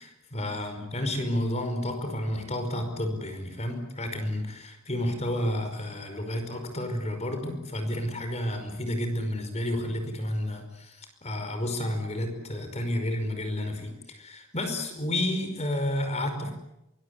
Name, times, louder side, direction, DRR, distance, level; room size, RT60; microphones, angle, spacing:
voice 1, 0.0-16.5, left 1 dB, 30° left, 6 dB, 5.3 m, -31 dB
24.0 x 22.0 x 9.8 m, 0.89 s
head